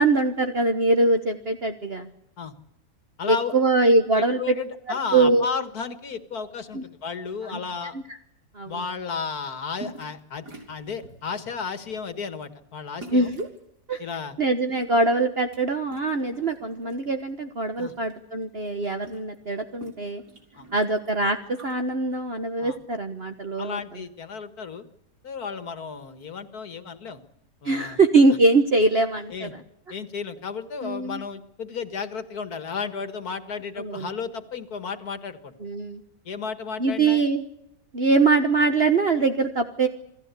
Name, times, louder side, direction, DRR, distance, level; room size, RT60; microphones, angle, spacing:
voice 1, 0.0-2.1 3.3-4.5 5.1-5.4 6.7-6.8 7.5-7.6 8.5-8.8 13.1-13.5 13.9-14.0 14.4-20.2 20.7-23.8 27.6-29.6 30.8-31.2 33.8-34.1 35.6-36.0 36.8-37.4 37.9-39.9, right 3 dB, 40° right, 6 dB, 1.4 m, -22 dB
voice 2, 3.2-3.5 4.2-8.0 8.7-13.3 14.0-14.4 17.8-17.9 20.6-20.7 22.6-22.8 23.6-24.9 25.2-27.2 27.6-28.0 29.3-29.5 29.9-35.5 36.3-37.2, left 5 dB, 65° left, 10 dB, 2.2 m, -33 dB
sound 1, 9.8-10.2 10.5-11.3 11.8-12.1 13.0-13.6 14.5-15.6 15.9-17.0 17.4-18.1 18.4-18.5 18.7-21.8, right 3 dB, 90° right, 5.5 m, -45 dB
28.0 x 17.0 x 8.4 m, 0.83 s
omnidirectional pair, 1.7 m